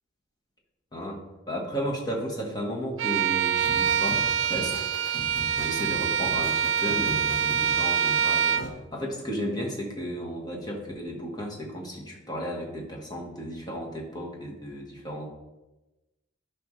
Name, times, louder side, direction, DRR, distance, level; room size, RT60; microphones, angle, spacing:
voice 1, 0.9-4.8 5.6-15.3, equal, 20° left, -1 dB, 1.3 m, -34 dB
Bowed string instrument, 3.0-8.7, right 7 dB, 75° right, 0.3 m, -25 dB
sound 1, 3.6-8.7, left 1 dB, 75° left, 1.2 m, -40 dB
11.0 x 5.2 x 3.2 m, 1.1 s
head